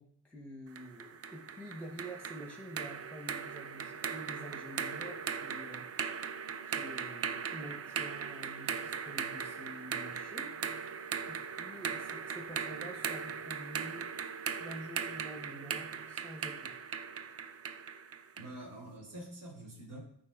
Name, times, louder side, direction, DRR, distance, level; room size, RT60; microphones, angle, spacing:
voice 1, 0.0-5.8 6.6-10.5 11.3-14.1 14.6-16.8, right 1 dB, 5° left, 2 dB, 0.8 m, -48 dB
sound 1, 0.8-18.6, right 6 dB, 30° right, 0.4 m, -39 dB
voice 2, 18.4-20.0, right 1 dB, 80° right, -5 dB, 2.1 m, -46 dB
8.4 x 5.3 x 2.3 m, 0.64 s
supercardioid pair, 50°, 48 cm